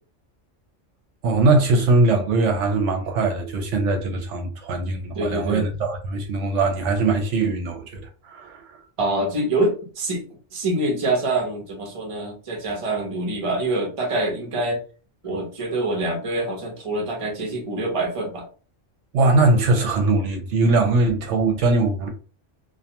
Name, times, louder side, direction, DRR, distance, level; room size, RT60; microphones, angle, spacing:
voice 1, 1.2-8.8 19.1-22.1, right 3 dB, 75° right, 0.9 m, -21 dB
voice 2, 5.1-5.7 9.0-10.2 10.5-14.8 15.2-18.4, right 2 dB, 30° right, 0.7 m, -25 dB
2.3 x 2.3 x 2.8 m
omnidirectional pair, 1.3 m